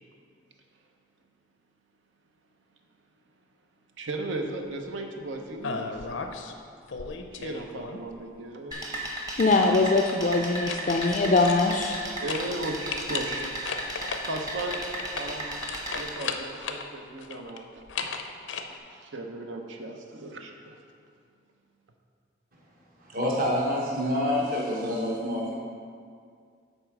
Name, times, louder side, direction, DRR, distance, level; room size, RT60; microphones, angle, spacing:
voice 1, 4.0-5.9 6.3-6.4 7.3-8.8 12.2-13.5 13.8-14.8 15.1-15.5 15.9-17.7 18.0-18.2 18.7-20.8, right 2 dB, 85° right, 3 dB, 0.7 m, -36 dB
sound 1, 5.6-6.5 6.9-8.2 10.4-12.0 12.3-12.5 12.9-16.9 17.2-18.6, left 5 dB, 85° left, 0.6 m, -35 dB
sound 2, 8.7-16.1, right 1 dB, 20° right, 0.8 m, -35 dB
voice 2, 9.4-12.0, left 3 dB, 40° left, 3 dB, 0.3 m, -22 dB
voice 3, 23.0-25.5, left 1 dB, 50° right, -3 dB, 1.0 m, -27 dB
8.0 x 4.4 x 6.0 m, 2.3 s
head